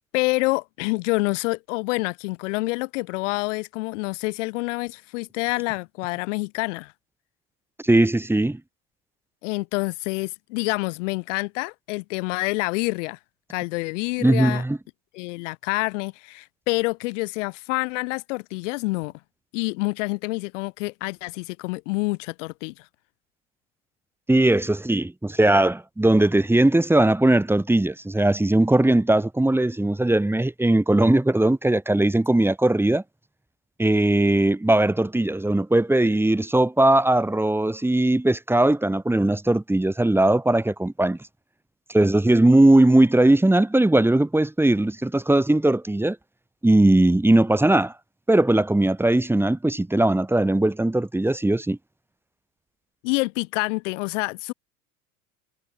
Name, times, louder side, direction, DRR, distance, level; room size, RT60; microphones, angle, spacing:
voice 1, 0.1-6.9 9.4-13.2 13.5-14.6 15.1-19.1 19.5-22.9 53.0-54.5, left 25 dB, 65° left, 0.9 m, -27 dB
voice 2, 7.8-8.6 14.2-14.8 24.3-33.0 33.8-41.2 41.9-46.2 46.6-47.9 48.3-51.8, right 1 dB, 5° right, 1.8 m, -19 dB
hypercardioid pair, 90°, 40 cm